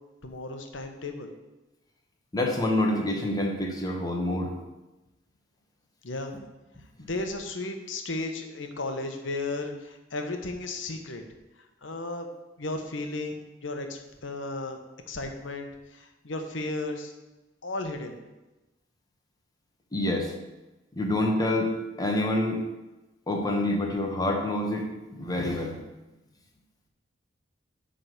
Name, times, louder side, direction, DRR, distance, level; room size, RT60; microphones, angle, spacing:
voice 1, 0.2-1.3 6.0-6.4 7.1-11.2 11.8-12.3 12.6-14.8 15.1-17.1 17.6-18.2, left 2 dB, 85° left, 5 dB, 1.2 m, -34 dB
voice 2, 2.3-4.5 19.9-20.3 20.9-21.7 22.0-22.6 23.3-24.9 25.2-25.8, left 1 dB, 20° left, 1 dB, 1.4 m, -27 dB
10.0 x 3.9 x 6.7 m, 1.1 s
head